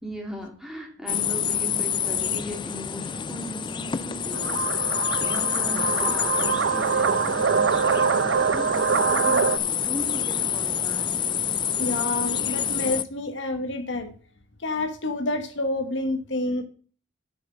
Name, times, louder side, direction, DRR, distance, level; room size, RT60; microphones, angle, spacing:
voice 1, 0.0-11.1, left 1 dB, 5° right, 2.3 m, -38 dB
sound 1, 1.1-13.0, left 8 dB, 25° left, 0.4 m, -28 dB
sound 2, 4.3-9.6, right 5 dB, 65° right, 0.6 m, -24 dB
voice 2, 11.8-14.1 14.6-16.6, left 2 dB, 65° left, 1.2 m, -28 dB
7.1 x 6.1 x 7.1 m
head